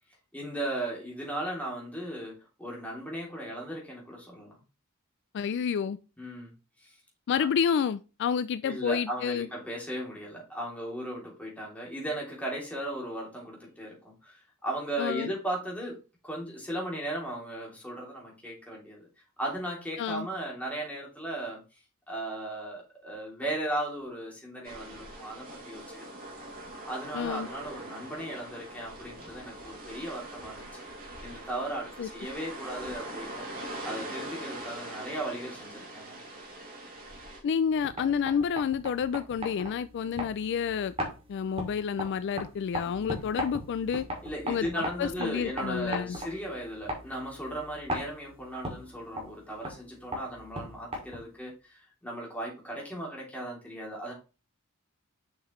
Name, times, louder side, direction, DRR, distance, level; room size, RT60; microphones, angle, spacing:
voice 1, 0.3-4.6 6.2-6.5 6.8-6.9 7.4-7.5 8.6-19.1 19.4-21.6 22.1-26.1 26.8-30.7 31.2-33.5 33.8-36.2 42.8-43.3 44.2-54.1, right 1 dB, 5° left, 2.9 m, -37 dB
voice 2, 5.3-6.0 7.3-9.5 15.0-15.3 20.0-20.3 27.1-27.5 32.0-32.1 37.4-40.9 41.3-44.0 44.5-46.2, left 7 dB, 55° left, 0.3 m, -29 dB
sound 1, 24.6-37.4, right 1 dB, 45° right, 2.6 m, -42 dB
sound 2, 37.7-51.4, equal, 30° right, 2.4 m, -39 dB
7.1 x 5.9 x 3.1 m
head